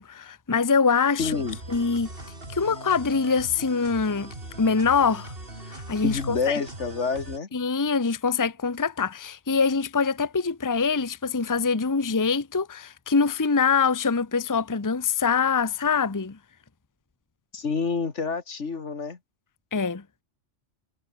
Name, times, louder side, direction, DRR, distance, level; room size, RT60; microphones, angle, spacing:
voice 1, 0.0-1.4 1.7-2.1 2.5-4.3 4.6-5.3 5.7-6.6 7.5-16.4 19.7-20.0, left 5 dB, 20° left, 0.9 m, -24 dB
voice 2, 1.2-1.6 6.0-7.5 17.5-19.2, left 5 dB, 80° left, 2.3 m, -28 dB
sound 1, 1.2-7.4, right 2 dB, 50° right, 5.1 m, -40 dB
omnidirectional pair, 1.2 m